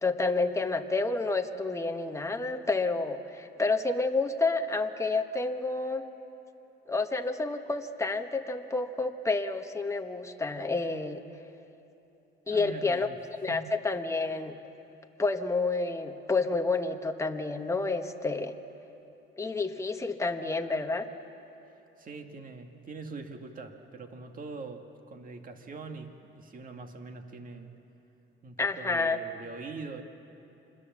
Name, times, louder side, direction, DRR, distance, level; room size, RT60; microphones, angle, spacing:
voice 1, 0.0-6.1 6.9-11.2 12.5-13.1 13.4-14.6 15.2-18.5 19.4-21.1 28.6-29.2, left 3 dB, 15° left, 5 dB, 1.2 m, -29 dB
voice 2, 12.5-13.2 13.5-13.7 22.0-27.7 28.4-30.0, right 4 dB, 40° right, 5 dB, 2.0 m, -43 dB
26.5 x 21.0 x 7.4 m, 2.9 s
cardioid pair, 125°, 21 cm